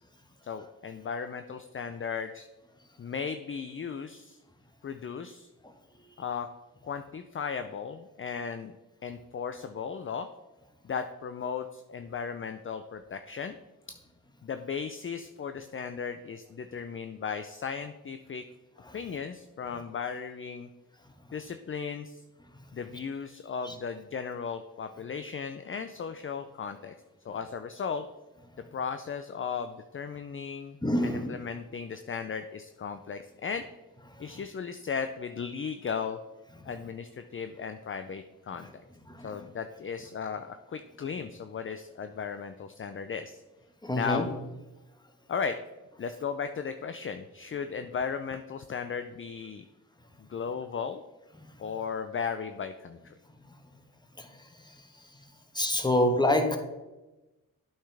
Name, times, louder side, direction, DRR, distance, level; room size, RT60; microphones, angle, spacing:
voice 1, 0.4-2.5 3.0-4.4 4.8-5.5 6.2-6.5 6.8-8.7 9.0-10.3 10.8-13.6 14.4-18.5 18.9-20.7 21.3-22.2 22.7-26.9 27.2-28.1 28.7-33.6 34.2-36.2 36.6-38.8 39.2-43.4 43.9-44.3 45.3-45.6 46.0-49.6 50.3-51.0 51.6-53.1, left 6 dB, 40° left, 9 dB, 0.5 m, -36 dB
voice 2, 30.8-31.3 39.1-39.3 43.8-44.2 51.4-51.6 54.2-54.3 55.5-56.6, left 1 dB, 10° left, 5 dB, 1.3 m, -26 dB
8.5 x 5.7 x 3.4 m, 1.1 s
supercardioid pair, 45°, 34 cm